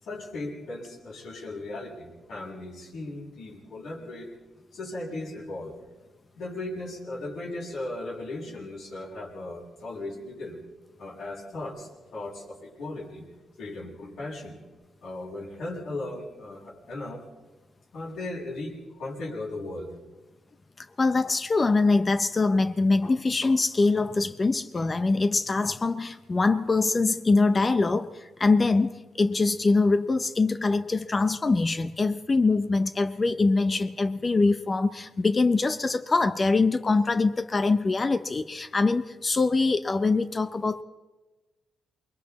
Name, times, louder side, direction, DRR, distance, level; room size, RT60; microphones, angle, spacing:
voice 1, 0.0-4.3 4.7-5.8 6.4-10.6 11.0-13.2 13.6-14.6 15.0-17.2 17.9-19.9, left 2 dB, 75° left, -4 dB, 7.6 m, -37 dB
voice 2, 20.8-40.8, left 3 dB, 30° left, 10 dB, 0.8 m, -23 dB
28.0 x 22.0 x 4.2 m, 1.2 s
cardioid pair, 95°, 0 cm